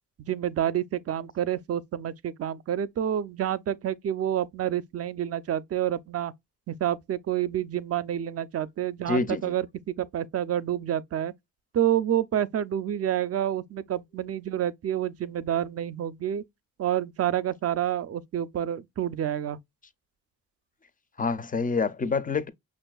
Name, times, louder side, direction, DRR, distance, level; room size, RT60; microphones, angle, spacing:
voice 1, 0.3-6.3 6.7-11.3 11.7-16.4 16.8-19.6, right 10 dB, 45° right, 0.4 m, -28 dB
voice 2, 9.1-9.5 21.2-22.5, left 4 dB, 25° left, 0.4 m, -27 dB
5.9 x 2.4 x 2.2 m
wide cardioid pair, 140°, 36 cm